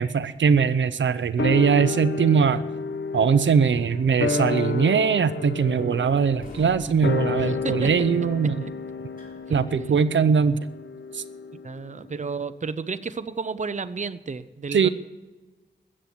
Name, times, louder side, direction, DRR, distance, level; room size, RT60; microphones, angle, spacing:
voice 1, 0.0-2.6 3.1-8.6 9.5-10.6 11.1-11.2 14.7-14.9, right 6 dB, 85° right, 12 dB, 0.7 m, -21 dB
sound 1, 1.4-12.0 12.3-12.4, left 4 dB, 75° left, 0.8 m, -31 dB
sound 2, 6.3-10.2, left 1 dB, 50° left, 3.8 m, -47 dB
voice 2, 7.4-7.9 8.6-8.7 9.5-9.6 11.6-14.9, right 4 dB, 40° right, 12 dB, 0.7 m, -32 dB
14.0 x 8.8 x 9.5 m, 1.2 s
wide cardioid pair, 95°, 19 cm